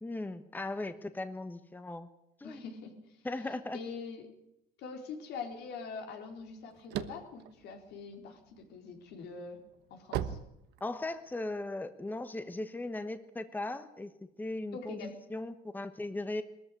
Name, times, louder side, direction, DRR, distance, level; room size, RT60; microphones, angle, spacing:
voice 1, 0.0-2.1 2.4-2.6 3.2-3.8 10.8-14.1 14.4-16.4, left 2 dB, 10° left, 10 dB, 1.2 m, -38 dB
voice 2, 2.4-2.9 3.7-4.2 4.8-9.6 9.9-10.4 14.7-15.1, left 5 dB, 80° left, 4 dB, 4.2 m, -43 dB
sound 1, 6.4-8.6 9.1-11.3, right 11 dB, 85° right, 1.2 m, -38 dB
20.0 x 14.0 x 9.9 m, 0.84 s
cardioid pair, 110°, 17 cm